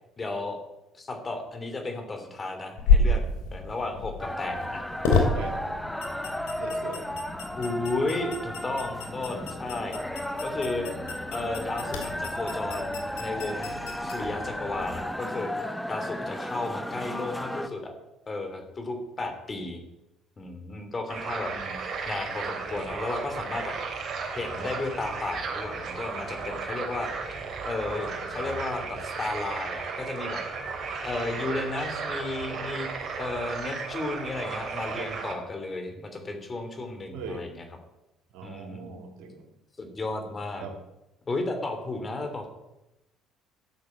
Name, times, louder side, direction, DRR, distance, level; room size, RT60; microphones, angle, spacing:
voice 1, 0.2-0.6 0.9-3.2 3.5-4.8 7.5-10.0 10.4-10.9 11.3-13.7 14.0-17.9 18.3-19.8 20.4-21.5 22.0-23.7 24.3-27.3 27.6-30.6 31.0-32.9 33.2-37.6 38.4-38.9 39.8-40.7 41.3-42.5, left 2 dB, 30° left, 5 dB, 3.1 m, -33 dB
sound 1, 2.8-15.0, left 3 dB, 90° left, 2.7 m, -30 dB
sound 2, 4.2-17.7, left 1 dB, 5° left, 1.0 m, -34 dB
voice 2, 5.2-5.8 6.6-7.1 21.5-21.8 26.4-26.9 34.9-35.1 37.1-37.5 38.3-39.5 40.6-40.8, right 5 dB, 80° right, 4 dB, 2.6 m, -41 dB
sound 3, 21.1-35.3, right 5 dB, 50° right, 3.2 m, -35 dB
13.0 x 6.6 x 8.6 m, 0.95 s
supercardioid pair, 80°, 0 cm